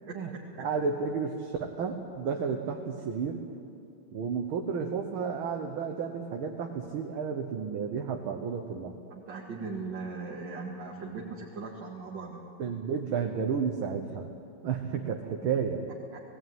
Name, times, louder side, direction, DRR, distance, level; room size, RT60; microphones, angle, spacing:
voice 1, 0.1-0.7 9.1-12.4 16.1-16.2, right 4 dB, 60° right, -3 dB, 2.5 m, -39 dB
voice 2, 0.6-3.4 4.1-8.9 12.6-14.3 14.6-15.8, right 6 dB, 80° right, 3 dB, 2.0 m, -32 dB
18.5 x 17.0 x 9.3 m, 2.5 s
omnidirectional pair, 2.3 m